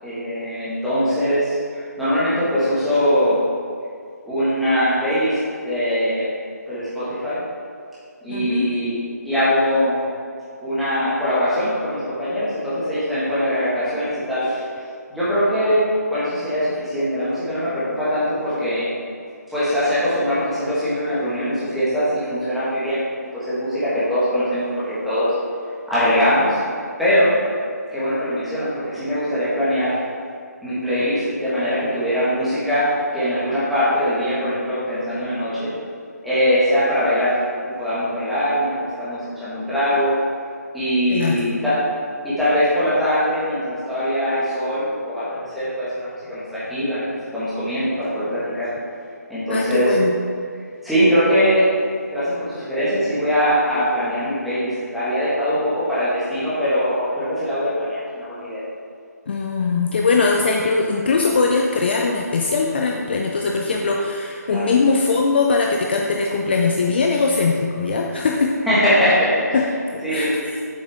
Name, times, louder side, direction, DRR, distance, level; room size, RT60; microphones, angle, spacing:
voice 1, 0.0-3.4 4.2-5.4 5.6-6.3 6.7-7.4 8.2-9.0 9.2-10.0 10.6-14.6 15.1-18.9 19.5-23.0 23.3-25.3 25.9-26.6 27.0-27.3 27.9-30.0 30.6-35.7 36.2-37.3 37.6-40.1 40.7-41.8 42.2-47.0 47.3-48.7 49.3-49.9 50.8-51.6 52.1-58.6 64.5-64.7 68.6-69.6 70.0-70.3, equal, ahead, -13 dB, 1.7 m, -21 dB
voice 2, 8.3-8.7 41.1-41.4 49.5-50.1 59.3-68.6 69.5-69.7 69.9-70.3, left 4 dB, 35° left, 0 dB, 0.5 m, -20 dB
7.4 x 6.2 x 3.6 m, 2.3 s
figure-of-eight pair, 150°, 9 cm